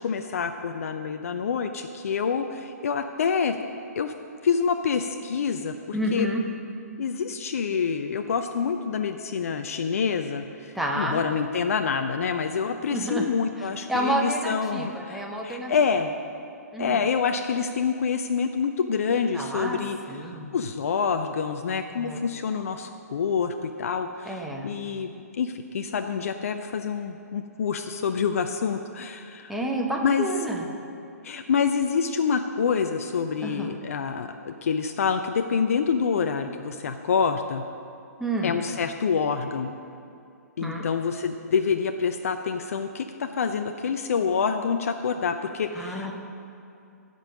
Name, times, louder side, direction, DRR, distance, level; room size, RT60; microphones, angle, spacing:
voice 1, 0.0-3.6 4.0-4.1 4.4-6.3 7.0-16.1 16.8-20.0 20.2-25.1 25.4-29.5 30.0-30.3 31.2-37.6 38.4-39.8 40.6-46.1, left 6 dB, 55° left, 7 dB, 0.5 m, -27 dB
voice 2, 5.9-6.4 10.7-11.2 12.9-13.3 13.6-15.7 16.7-17.0 19.3-19.8 20.1-20.5 22.0-22.2 24.2-24.7 29.5-30.7 33.4-33.8 38.2-38.6 40.6-40.9 45.7-46.1, right 1 dB, ahead, -1 dB, 1.0 m, -29 dB
15.5 x 5.4 x 6.3 m, 2.6 s
figure-of-eight pair, 125°, 9 cm